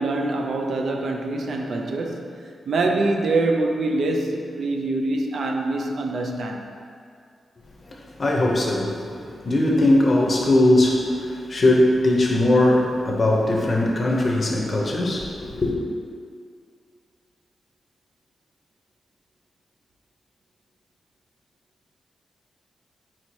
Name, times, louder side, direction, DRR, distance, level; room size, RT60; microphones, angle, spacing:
voice 1, 0.0-2.3 2.7-6.8, right 2 dB, 65° right, 3 dB, 0.4 m, -24 dB
voice 2, 7.9-15.7, left 1 dB, 35° left, -1 dB, 0.6 m, -20 dB
4.3 x 2.7 x 4.5 m, 2.2 s
wide cardioid pair, 120°, 0 cm